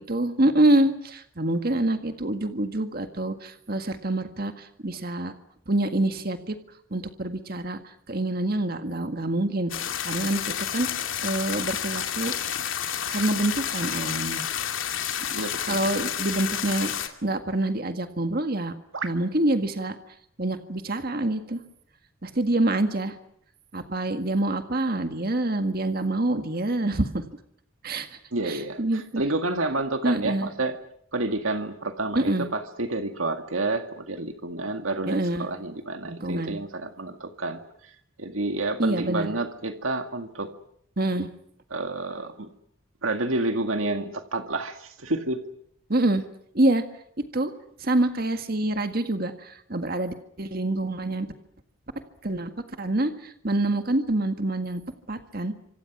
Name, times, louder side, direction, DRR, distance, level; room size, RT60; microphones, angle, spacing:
voice 1, 0.1-5.3 5.7-6.6 6.9-9.7 10.0-10.4 10.7-10.9 11.2-12.3 13.1-14.4 15.7-16.9 17.2-18.7 19.0-20.0 20.4-21.6 22.2-23.2 23.7-27.2 27.8-28.1 28.5-29.2 30.0-30.5 32.1-32.5 35.1-35.5 36.0-36.6 38.8-39.3 41.0-41.3 45.9-46.2 46.5-46.8 47.3-47.5 47.8-51.3 52.2-52.5 52.8-54.8 55.1-55.5, right 1 dB, 45° right, 7 dB, 1.8 m, -26 dB
sound 1, 9.7-17.1, left 9 dB, 75° left, 2.4 m, -30 dB
voice 2, 15.3-16.0 18.9-19.1 28.3-30.8 31.1-37.6 38.2-40.5 41.7-42.5 43.0-45.4, right 2 dB, 90° right, 6 dB, 2.1 m, -29 dB
29.0 x 26.0 x 6.1 m, 0.69 s
head